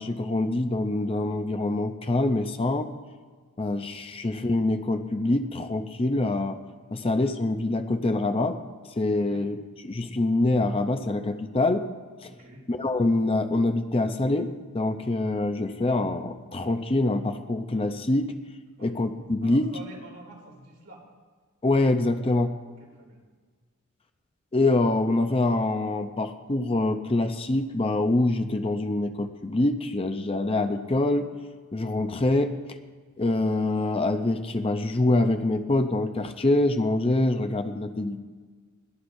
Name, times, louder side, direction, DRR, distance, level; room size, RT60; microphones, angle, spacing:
voice 1, 0.0-2.9 3.6-6.6 6.9-8.6 9.0-11.9 12.2-12.3 12.7-18.3 18.8-19.7 21.6-22.5 24.5-31.3 31.7-32.8 33.2-38.2, left 2 dB, 25° left, 7 dB, 0.6 m, -25 dB
voice 2, 12.2-12.6 18.8-18.9 19.4-21.0 22.2-22.4 23.0-23.2, right 1 dB, 85° right, -4 dB, 3.7 m, -47 dB
21.0 x 13.0 x 2.7 m, 1.5 s
head